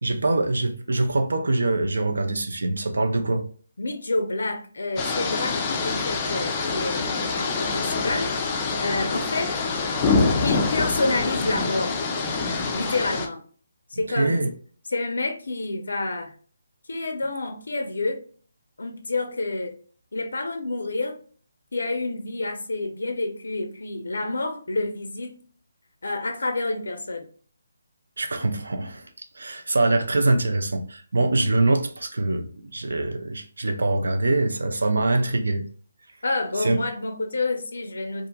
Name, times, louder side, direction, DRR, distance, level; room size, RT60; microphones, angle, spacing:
voice 1, 0.0-3.4 14.2-14.5 28.2-29.1 29.4-35.7 36.6-36.8, right 2 dB, 90° right, 0.5 m, -24 dB
voice 2, 3.8-8.3 8.8-9.5 10.4-12.0 12.7-13.4 13.9-14.5 14.9-16.3 16.9-18.2 18.8-19.8 20.1-21.2 21.7-25.4 26.0-27.3 36.2-38.3, left 2 dB, 90° left, 0.4 m, -28 dB
sound 1, 5.0-13.3, left 4 dB, 20° left, 0.3 m, -25 dB
2.8 x 2.4 x 2.2 m
hypercardioid pair, 170°, 0 cm